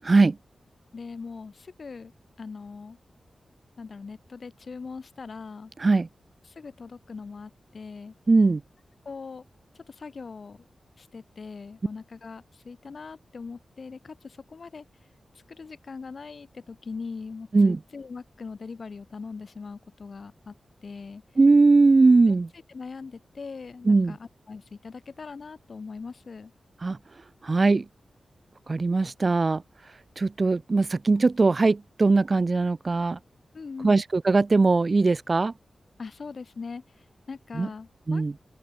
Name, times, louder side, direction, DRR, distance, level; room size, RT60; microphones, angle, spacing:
voice 1, 0.9-2.1 2.4-3.0 3.8-5.7 6.6-8.1 9.1-9.4 9.9-10.6 11.0-14.8 15.5-20.5 20.8-21.2 22.7-26.5 33.5-34.0 36.0-36.8 37.3-38.2, left 4 dB, 60° left, 5.9 m, -40 dB
voice 2, 8.3-8.6 17.5-17.8 21.4-22.5 23.9-24.2 26.8-27.0 27.4-27.8 28.7-29.6 30.2-33.2 33.8-35.5 37.5-37.7 38.1-38.3, right 3 dB, 45° right, 0.4 m, -20 dB
open air
cardioid pair, 65°, 0 cm